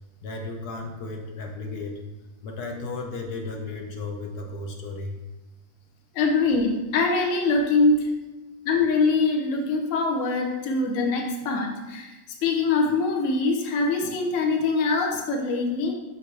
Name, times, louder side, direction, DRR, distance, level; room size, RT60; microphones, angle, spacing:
voice 1, 0.2-2.0 2.4-5.2, left 3 dB, 75° left, 2 dB, 1.4 m, -34 dB
voice 2, 6.1-8.1 8.6-15.9, left 3 dB, 55° left, 1 dB, 1.2 m, -23 dB
7.7 x 5.7 x 3.4 m, 1.1 s
omnidirectional pair, 1.7 m